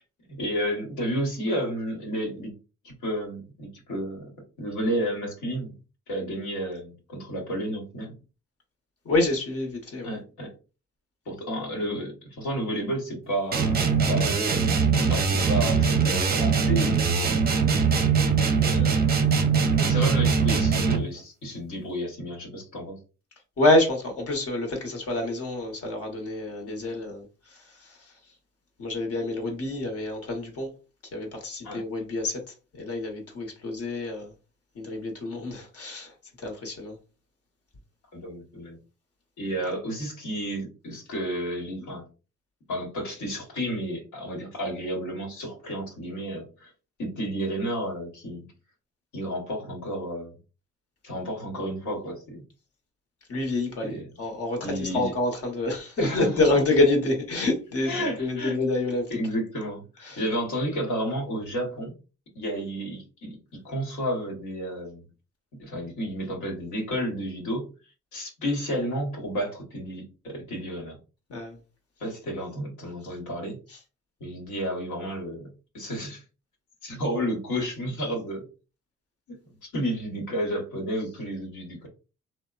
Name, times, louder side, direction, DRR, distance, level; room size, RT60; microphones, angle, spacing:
voice 1, 0.3-2.5 2.8-4.3 4.6-5.7 6.1-8.1 10.0-10.5 11.3-13.8 14.1-14.4 15.1-17.1 18.5-19.1 19.8-23.0 31.6-31.8 38.1-38.8 39.4-42.0 42.7-46.7 47.0-48.5 49.1-50.3 51.0-52.4 53.8-54.1 54.6-55.1 56.0-56.6 57.8-58.6 59.1-61.9 62.3-63.4 63.6-65.1 65.6-67.7 68.1-71.0 72.0-73.6 74.2-76.2 76.8-78.5 79.3-81.9, equal, 75° left, 1.1 m, -31 dB
voice 2, 9.0-10.1 23.6-28.1 28.8-30.7 31.1-34.3 34.7-37.0 53.3-59.1 60.0-60.2 71.3-71.6 73.7-73.8, left 2 dB, 50° left, 1.0 m, -27 dB
sound 1, 13.5-21.2, right 5 dB, 30° right, 0.5 m, -22 dB
2.9 x 2.0 x 2.3 m
cardioid pair, 90°, 30 cm